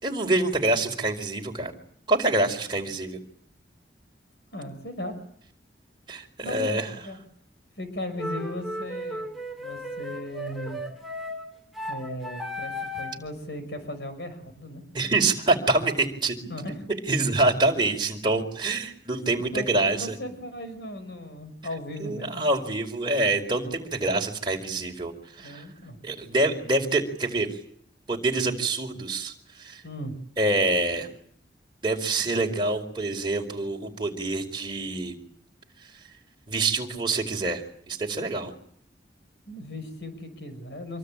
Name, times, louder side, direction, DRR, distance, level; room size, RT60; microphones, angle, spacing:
voice 1, 0.0-1.7 2.1-3.2 6.1-6.9 14.9-16.4 17.1-20.1 22.0-25.6 26.0-27.5 28.1-29.3 29.6-29.8 30.4-31.1 31.8-35.1 36.5-38.5, right 2 dB, 25° right, 1 dB, 4.7 m, -26 dB
voice 2, 4.5-5.2 6.4-7.2 7.8-9.3 9.6-10.8 11.9-14.8 16.4-16.8 19.1-19.2 19.5-22.5 25.4-26.0 29.8-30.2 39.5-41.0, left 1 dB, 65° left, 8 dB, 5.9 m, -37 dB
sound 1, 8.2-13.3, left 1 dB, ahead, 2.7 m, -35 dB
26.5 x 24.0 x 8.9 m, 0.62 s
head